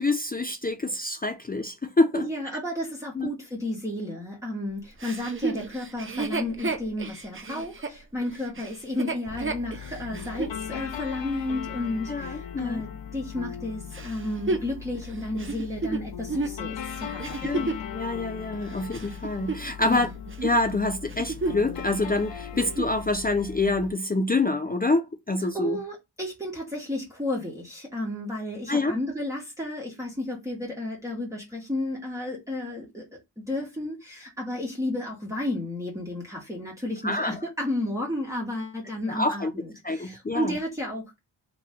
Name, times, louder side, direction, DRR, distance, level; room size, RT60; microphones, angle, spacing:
voice 1, 0.0-2.3 3.2-3.3 12.1-12.8 17.4-20.1 20.4-25.8 28.7-28.9 37.0-37.4 39.1-39.5 39.8-40.5, left 2 dB, 20° left, 0.5 m, -26 dB
voice 2, 2.1-17.7 19.8-20.1 25.5-33.0 33.4-41.2, left 1 dB, 5° right, 1.6 m, -32 dB
Chuckle chortle, 5.0-10.6 11.2-11.3 13.9-17.9 18.5-20.0 20.3-20.6 21.0-21.7 22.0-22.1 22.5-23.0 23.6-23.7, right 3 dB, 30° right, 0.7 m, -32 dB
sound 1, 9.3-23.9, left 8 dB, 90° left, 0.8 m, -38 dB
3.0 x 3.0 x 3.6 m
cardioid pair, 55°, 43 cm